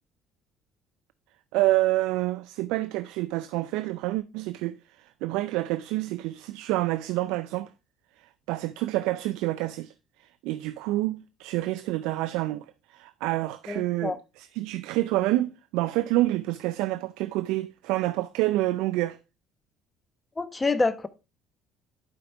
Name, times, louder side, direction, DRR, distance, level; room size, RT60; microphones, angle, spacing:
voice 1, 1.5-4.8 5.2-7.7 8.5-9.9 10.4-12.6 12.9-19.2, right 17 dB, 75° right, 0.4 m, -27 dB
voice 2, 13.7-14.2 20.4-21.1, left 3 dB, 25° left, 1.1 m, -27 dB
11.5 x 5.2 x 3.4 m
hypercardioid pair, 60°, 0 cm